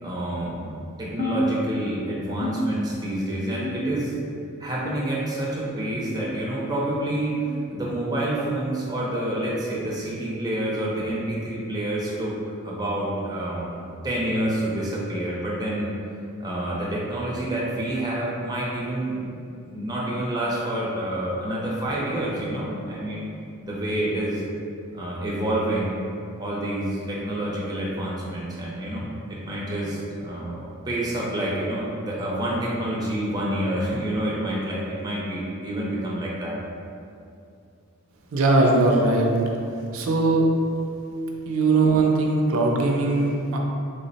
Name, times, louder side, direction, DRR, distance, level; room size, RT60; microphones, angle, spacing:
voice 1, 0.0-4.1 4.6-7.4 7.7-12.4 12.6-15.9 16.4-19.1 19.6-23.3 23.6-24.4 24.9-25.9 26.4-36.6, right 1 dB, 20° right, -5 dB, 0.5 m, -28 dB
sound 1, 1.2-2.0 2.4-3.2 3.6-4.2 4.8-5.5 6.1-6.4 7.3-7.5 8.5-8.7 9.7-9.9 10.9-11.1 12.2-12.4 13.4-13.6 14.6-14.7 15.8-15.9, equal, 75° left, 0.4 m, -31 dB
voice 2, 38.3-39.3 39.9-40.4 41.5-43.6, right 3 dB, 65° right, 0 dB, 0.4 m, -20 dB
3.3 x 2.1 x 3.9 m, 2.5 s
head